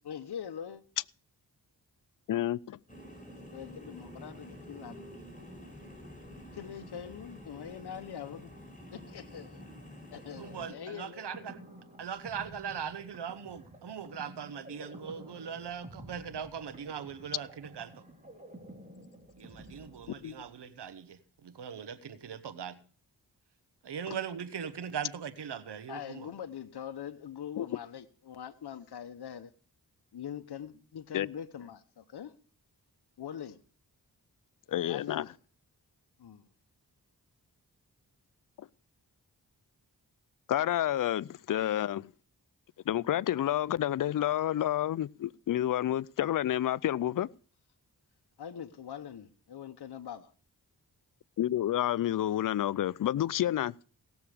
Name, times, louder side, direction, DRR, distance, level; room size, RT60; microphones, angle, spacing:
voice 1, 0.0-0.8 3.5-5.1 6.5-8.5 8.9-9.6 10.1-11.3 25.9-29.5 30.1-32.3 33.2-33.6 34.9-35.3 36.2-36.4 48.4-50.3, left 9 dB, 70° left, 0.9 m, -43 dB
voice 2, 2.3-2.8 20.2-20.4 24.1-24.2 27.6-27.7 31.1-31.3 34.7-35.3 38.6-38.7 40.5-42.1 42.9-47.3 51.4-53.7, left 12 dB, 55° left, 0.5 m, -29 dB
sound 1, 2.9-10.7, equal, 20° left, 6.6 m, -49 dB
sound 2, 10.1-20.7, right 1 dB, 20° right, 3.5 m, -51 dB
voice 3, 10.3-11.6 12.0-18.0 19.4-22.8 23.8-26.3, right 7 dB, 80° right, 1.1 m, -40 dB
17.5 x 7.1 x 4.9 m
cardioid pair, 45°, 40 cm